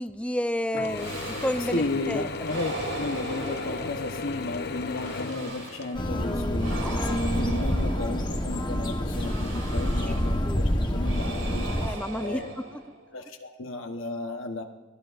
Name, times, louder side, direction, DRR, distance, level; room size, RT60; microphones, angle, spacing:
voice 1, 0.0-2.3 6.8-7.2 10.5-10.6 11.8-12.8, left 1 dB, 5° left, 10 dB, 0.5 m, -31 dB
Mechanisms / Drill, 0.7-6.2, left 3 dB, 50° left, 0.7 m, -35 dB
sound 1, 0.9-2.0 2.4-4.4 4.9-6.1 6.5-8.5 9.1-10.5 11.0-13.1, right 2 dB, 85° right, 3.0 m, -39 dB
voice 2, 1.6-12.5 13.1-14.6, left 2 dB, 90° left, 3 dB, 1.1 m, -34 dB
sound 2, 5.9-11.9, equal, 25° left, 1.1 m, -27 dB
23.5 x 17.5 x 2.5 m, 1.2 s
head